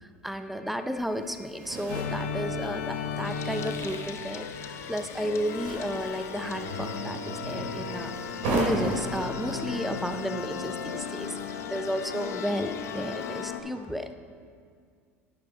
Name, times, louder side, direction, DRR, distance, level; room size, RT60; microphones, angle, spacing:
voice 1, 0.0-14.2, equal, ahead, 9 dB, 0.5 m, -33 dB
sound 1, 1.0-11.3, right 2 dB, 70° right, 2.2 m, -37 dB
sound 2, 1.9-13.6, left 5 dB, 85° left, 0.6 m, -35 dB
sound 3, 3.2-13.5, left 7 dB, 40° left, 0.6 m, -45 dB
10.0 x 6.2 x 3.8 m, 2.1 s
hypercardioid pair, 85°, 7 cm